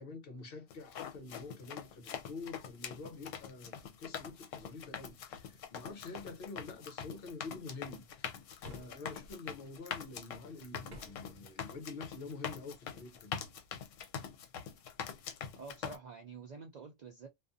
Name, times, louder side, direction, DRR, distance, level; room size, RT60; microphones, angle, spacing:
voice 1, 0.0-13.3, left 3 dB, 55° left, 0.8 m, -47 dB
sound 1, 0.7-16.0, left 7 dB, 80° left, 0.9 m, -44 dB
sound 2, 8.6-9.4 10.9-11.4, equal, 45° right, 0.6 m, -52 dB
voice 2, 15.6-17.3, right 4 dB, 85° right, 0.3 m, -48 dB
2.4 x 2.4 x 2.5 m
omnidirectional pair, 1.3 m